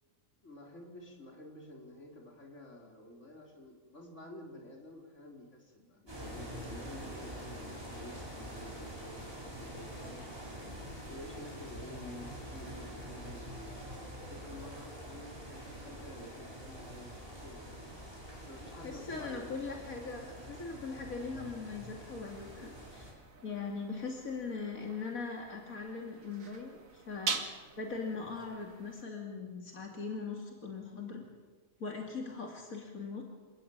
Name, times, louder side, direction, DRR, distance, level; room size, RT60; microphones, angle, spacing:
voice 1, 0.4-10.3 11.1-13.7 14.3-17.1 17.4-17.8 18.4-19.6, left 1 dB, 60° left, 0 dB, 5.0 m, -50 dB
sound 1, 6.1-23.1, equal, 15° right, 6.8 m, -46 dB
voice 2, 18.8-23.1 23.4-27.4 27.8-31.3 31.8-33.2, left 4 dB, 90° left, 1 dB, 3.1 m, -40 dB
sound 2, 22.2-29.0, right 4 dB, 75° right, 2.3 m, -44 dB
28.0 x 18.5 x 8.9 m, 1.4 s
omnidirectional pair, 1.4 m